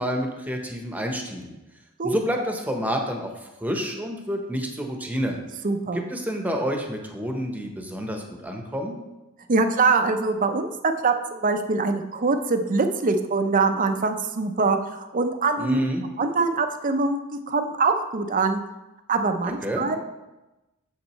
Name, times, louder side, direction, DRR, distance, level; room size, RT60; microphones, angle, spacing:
voice 1, 0.0-1.6 2.0-5.4 5.9-9.0 15.6-16.0 19.4-19.9, equal, 10° right, 2 dB, 1.0 m, -29 dB
voice 2, 5.6-6.0 9.5-10.7 11.0-15.8 16.2-17.2 17.5-18.6 19.1-20.0, right 4 dB, 40° right, 7 dB, 0.6 m, -23 dB
8.8 x 7.3 x 3.1 m, 1.0 s
head